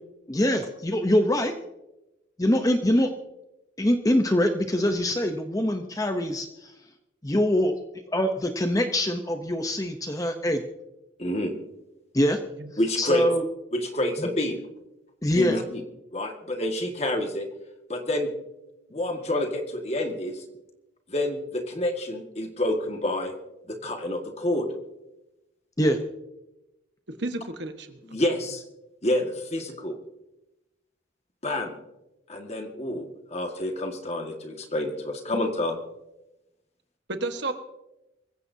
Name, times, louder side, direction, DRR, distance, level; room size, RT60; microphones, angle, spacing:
voice 1, 0.3-1.5 2.4-3.1 3.8-6.7 7.2-7.8 8.1-10.6 12.1-12.4 13.0-13.4 14.2-14.3 15.2-15.6 25.8-26.0, left 1 dB, 20° left, 5 dB, 0.7 m, -24 dB
voice 2, 11.2-11.5 12.8-13.2 13.7-14.6 15.3-15.8 16.1-17.5 17.9-18.3 18.9-20.4 21.1-23.3 23.7-24.7 28.1-28.6 29.0-30.0 31.4-31.8 32.3-35.8, left 1 dB, 35° left, 4 dB, 1.8 m, -28 dB
voice 3, 27.2-28.0 37.1-37.5, right 2 dB, 65° right, 7 dB, 1.4 m, -31 dB
24.0 x 15.5 x 2.8 m, 0.95 s
head